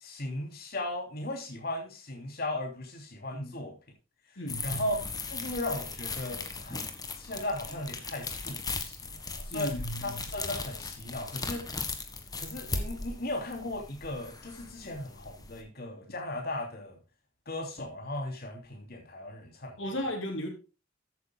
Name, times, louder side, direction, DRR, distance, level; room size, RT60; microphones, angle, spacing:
voice 1, 0.0-3.8 4.3-6.9 7.2-11.7 12.4-17.0 17.5-19.8, left 1 dB, 55° left, 3.1 m, -37 dB
voice 2, 4.4-4.8 9.5-10.0 19.8-20.5, equal, 75° left, 3.2 m, -35 dB
sound 1, 4.5-15.6, left 3 dB, 20° left, 1.5 m, -38 dB
14.0 x 9.2 x 2.2 m
head